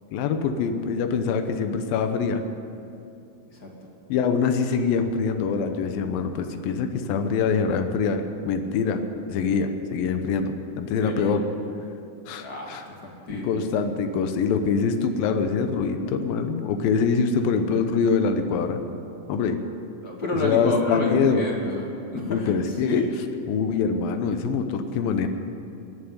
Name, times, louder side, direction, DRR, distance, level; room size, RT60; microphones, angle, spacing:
voice 1, 0.1-2.4 4.1-9.0 9.3-11.4 12.3-12.8 13.3-18.8 19.3-19.6 20.4-21.4 22.3-23.0 23.5-25.3, left 5 dB, 80° left, 7 dB, 2.7 m, -24 dB
voice 2, 3.5-3.9 11.0-11.4 12.4-13.6 20.0-23.1, left 2 dB, 30° left, -1 dB, 2.0 m, -30 dB
20.0 x 7.1 x 9.5 m, 2.8 s
omnidirectional pair, 4.2 m